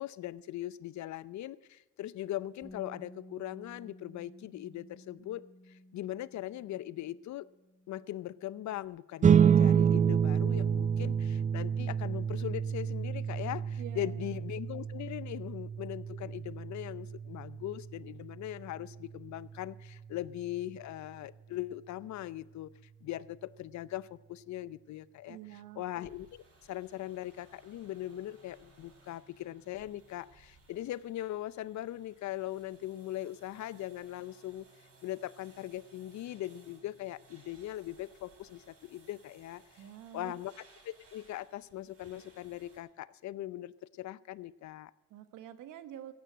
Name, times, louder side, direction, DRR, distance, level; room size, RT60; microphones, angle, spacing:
voice 1, 0.0-7.5 7.9-22.7 23.0-25.4 25.8-26.4 26.7-34.7 35.0-39.6 40.1-40.5 40.8-44.9, left 14 dB, 70° left, 19 dB, 0.6 m, -40 dB
Bass guitar, 2.6-8.9, left 1 dB, 10° right, 2.4 m, -55 dB
sound 1, 9.2-20.0, right 7 dB, 25° right, 0.4 m, -29 dB
voice 2, 13.8-14.3 25.3-25.9 39.8-40.3 45.1-46.1, right 12 dB, 80° right, 11 dB, 1.2 m, -47 dB
sound 2, 26.0-42.8, right 3 dB, 50° right, 6.4 m, -62 dB
15.0 x 9.5 x 7.7 m, 1.1 s
cardioid pair, 90°, 30 cm